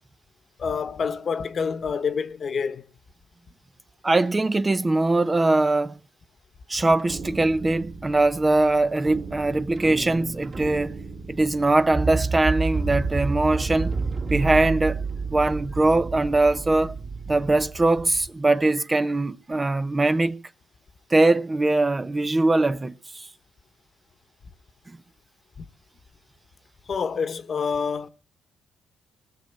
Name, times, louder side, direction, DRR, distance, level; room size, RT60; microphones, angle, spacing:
voice 1, 0.6-2.8 25.6-25.7 26.9-28.1, left 6 dB, 50° left, 1.3 m, -27 dB
voice 2, 4.0-6.0 6.7-11.0 11.3-14.0 14.3-15.0 15.3-16.9 17.3-20.4 21.1-23.3, right 2 dB, 20° right, 0.8 m, -21 dB
sound 1, 7.0-18.3, right 4 dB, 45° right, 2.7 m, -31 dB
18.5 x 6.5 x 9.4 m
cardioid pair, 90°, 0 cm